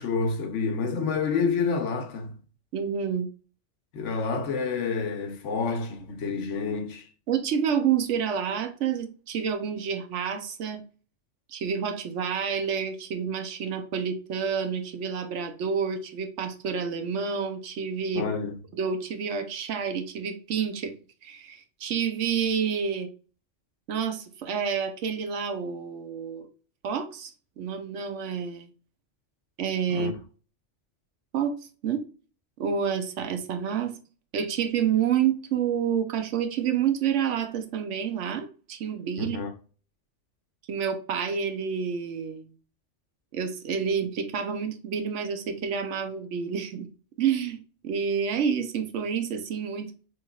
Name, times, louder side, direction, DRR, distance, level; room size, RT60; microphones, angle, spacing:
voice 1, 0.0-2.4 3.9-7.1 18.1-18.5 29.9-30.1 39.2-39.5, left 5 dB, 80° left, 1.1 m, -28 dB
voice 2, 2.7-3.3 7.3-10.8 11.5-18.3 18.8-20.9 21.2-23.1 23.9-26.5 26.8-27.3 27.6-28.7 29.6-30.1 31.3-31.5 31.8-32.1 32.6-34.0 34.3-39.4 40.7-42.5 43.3-46.9 47.2-50.1, right 7 dB, 75° right, 1.0 m, -29 dB
6.1 x 3.0 x 2.3 m
omnidirectional pair, 1.2 m